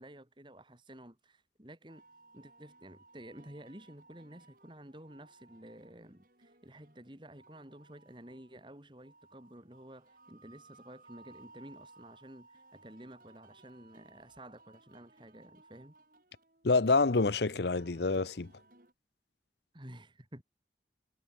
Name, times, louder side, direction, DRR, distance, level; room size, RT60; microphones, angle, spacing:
voice 1, 0.0-2.0 2.3-15.9 19.7-20.4, right 1 dB, 25° right, 3.2 m, -52 dB
sound 1, 1.9-18.9, right 3 dB, 50° right, 5.4 m, -61 dB
voice 2, 16.6-18.5, left 3 dB, 75° left, 0.8 m, -27 dB
head